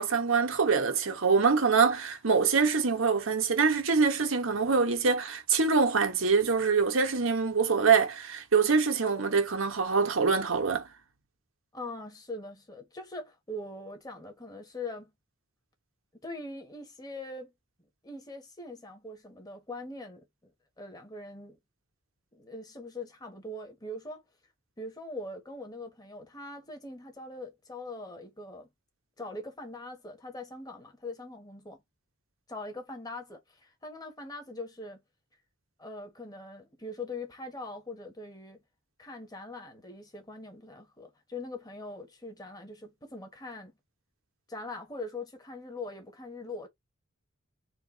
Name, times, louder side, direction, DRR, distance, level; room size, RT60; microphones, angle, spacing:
voice 1, 0.0-10.8, right 5 dB, 75° right, 1.2 m, -25 dB
voice 2, 11.7-15.1 16.2-17.5 18.0-20.3 20.8-21.6 22.3-24.2 24.8-28.7 29.2-31.8 32.5-35.0 35.8-38.6 39.0-43.7 44.5-46.7, left 2 dB, 20° left, 1.6 m, -42 dB
4.5 x 2.7 x 4.0 m
head